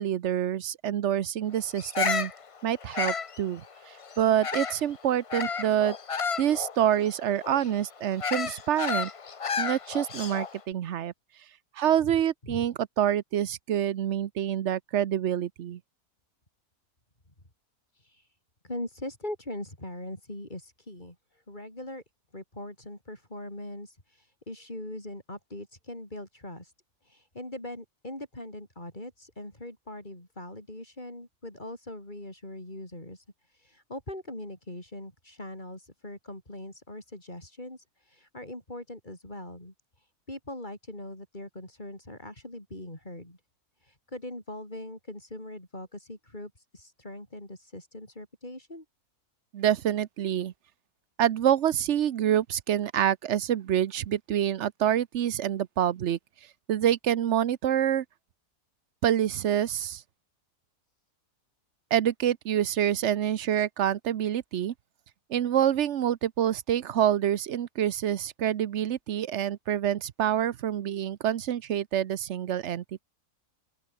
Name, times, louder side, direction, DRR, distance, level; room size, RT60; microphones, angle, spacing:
voice 1, 0.0-2.3 2.6-6.0 6.4-9.1 9.6-11.1 11.7-15.8 49.5-50.5 51.2-56.2 56.7-58.0 59.0-60.0 61.9-64.7 65.3-73.0, right 10 dB, 55° right, 0.9 m, -27 dB
Bird vocalization bird call bird song, 1.8-4.9 5.3-10.6, left 6 dB, 55° left, 0.3 m, -32 dB
voice 2, 12.0-12.7 17.9-18.4 18.6-22.0 22.3-26.7 27.0-43.4 43.8-48.8, left 1 dB, 30° left, 6.3 m, -41 dB
open air
omnidirectional pair, 1.6 m